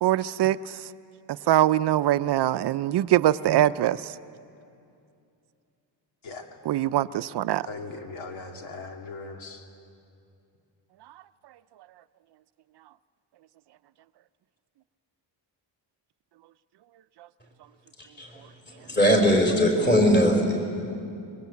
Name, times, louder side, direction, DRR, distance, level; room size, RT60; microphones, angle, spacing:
voice 1, 0.0-0.9 1.3-4.2 6.7-7.7, right 13 dB, 60° right, 14 dB, 0.6 m, -23 dB
voice 2, 7.7-9.6, left 3 dB, 80° left, 3 dB, 2.7 m, -39 dB
voice 3, 18.9-20.5, equal, 25° left, 2 dB, 5.1 m, -20 dB
25.5 x 23.0 x 8.4 m, 2.6 s
cardioid pair, 125°, 45 cm